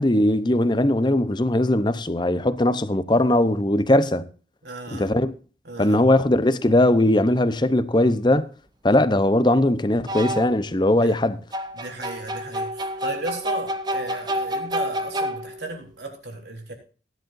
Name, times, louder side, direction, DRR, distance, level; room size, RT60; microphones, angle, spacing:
voice 1, 0.0-4.3 4.9-5.3 5.8-8.5 8.8-11.4, left 1 dB, 25° left, 0.8 m, -20 dB
voice 2, 4.6-5.2 5.6-6.1 11.0-11.4 11.7-16.7, right 2 dB, 70° right, 4.1 m, -35 dB
sound 1, 8.0-8.1 10.1-10.7 11.5-15.8, equal, 25° right, 1.0 m, -29 dB
17.5 x 10.5 x 2.6 m
head